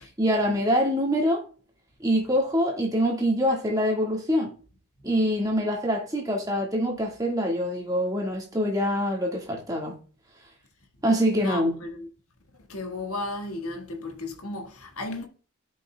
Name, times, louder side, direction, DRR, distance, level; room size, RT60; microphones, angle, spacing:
voice 1, 0.2-1.4 2.0-4.5 5.0-10.0 11.0-11.7, equal, 15° right, 1.6 m, -25 dB
voice 2, 11.3-12.1 12.7-15.3, left 2 dB, 90° left, 1.5 m, -34 dB
13.5 x 5.4 x 2.2 m
head